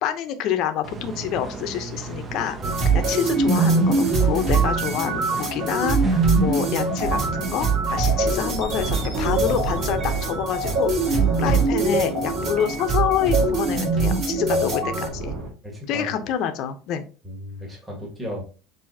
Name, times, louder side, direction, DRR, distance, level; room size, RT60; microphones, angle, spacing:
voice 1, 0.0-2.6 2.9-10.9 11.4-15.4 15.9-17.1, left 9 dB, 50° left, 8 dB, 0.7 m, -27 dB
sound 1, 0.8-7.3, right 3 dB, 25° right, 0.6 m, -36 dB
sound 2, 2.6-15.1, right 3 dB, 40° right, 1.6 m, -22 dB
sound 3, 7.0-15.5, right 4 dB, 60° right, 1.8 m, -31 dB
voice 2, 14.5-15.1 15.6-16.1 17.2-18.4, left 1 dB, 5° right, -3 dB, 1.5 m, -35 dB
7.1 x 2.7 x 2.7 m, 0.36 s
cardioid pair, 145°, 0 cm